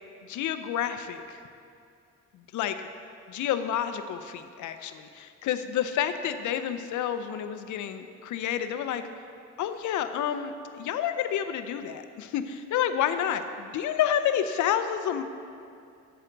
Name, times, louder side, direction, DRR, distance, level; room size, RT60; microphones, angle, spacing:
voice 1, 0.2-1.4 2.3-2.8 3.3-9.0 9.6-15.2, left 9 dB, 75° left, 10 dB, 0.6 m, -29 dB
11.0 x 7.9 x 3.9 m, 2.4 s
cardioid pair, 90°, 30 cm